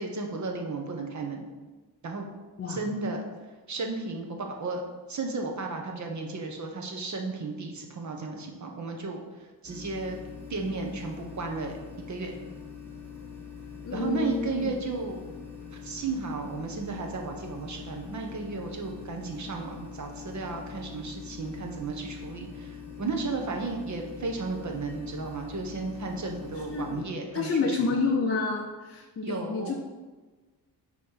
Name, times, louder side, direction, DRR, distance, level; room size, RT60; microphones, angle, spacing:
voice 1, 0.0-1.5 2.0-2.3 2.7-3.2 3.7-4.8 5.1-10.2 10.5-11.7 12.1-12.3 13.9-15.2 15.8-28.0 29.2-29.7, right 3 dB, 45° right, 2 dB, 1.0 m, -34 dB
sound 1, 9.6-27.0, left 6 dB, 5° left, 2.0 m, -43 dB
voice 2, 13.8-14.7 26.6-27.0 27.3-29.7, left 4 dB, 35° left, 0 dB, 0.5 m, -29 dB
6.0 x 3.1 x 5.7 m, 1.3 s
cardioid pair, 110°, 40 cm